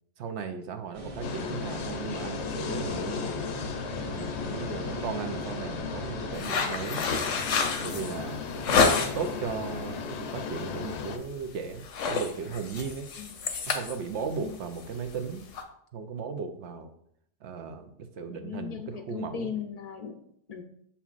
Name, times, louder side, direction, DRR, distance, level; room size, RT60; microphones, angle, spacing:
voice 1, 0.2-3.4 4.0-7.0 7.8-13.1 13.7-15.4 15.9-16.9 17.4-19.5, right 5 dB, 70° right, 6 dB, 0.9 m, -36 dB
sound 1, 0.9-6.4, equal, 30° right, 0.9 m, -40 dB
sound 2, 1.2-11.2, left 6 dB, 70° left, 0.8 m, -36 dB
sound 3, 6.3-9.4 9.8-10.2 10.5-10.7 11.0-11.4 11.7-15.6, left 5 dB, 85° left, 1.1 m, -28 dB
voice 2, 13.2-13.5 14.2-14.6 18.3-20.6, left 8 dB, 50° left, 6 dB, 0.5 m, -38 dB
7.0 x 5.7 x 2.5 m, 0.70 s
omnidirectional pair, 1.3 m